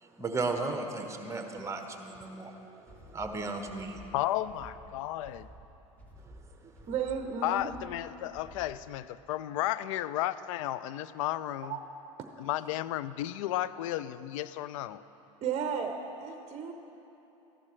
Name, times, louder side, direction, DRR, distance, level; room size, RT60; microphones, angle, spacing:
voice 1, 0.0-4.1 6.3-6.7, right 3 dB, 15° right, 4 dB, 1.2 m, -36 dB
sound 1, 2.9-8.9, right 1 dB, 10° left, 1.9 m, -52 dB
voice 2, 4.1-5.5 7.4-11.8 12.4-15.0, left 14 dB, 70° left, 16 dB, 0.4 m, -33 dB
voice 3, 6.9-7.7 11.6-11.8 12.2-12.3 15.4-15.9 16.2-16.7, right 7 dB, 40° right, 5 dB, 0.8 m, -33 dB
14.5 x 11.5 x 3.2 m, 3.0 s
hypercardioid pair, 85°, 17 cm